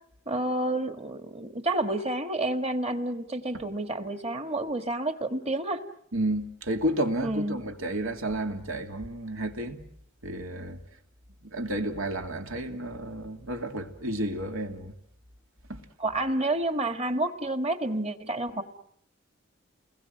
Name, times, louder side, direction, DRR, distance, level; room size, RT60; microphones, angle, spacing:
voice 1, 0.3-5.8 7.2-7.6 16.0-18.6, right 2 dB, 30° right, 1.6 m, -29 dB
voice 2, 6.1-9.9 10.2-10.8 11.4-14.9 15.7-15.8, right 1 dB, 85° right, 2.7 m, -31 dB
29.5 x 21.5 x 7.8 m
head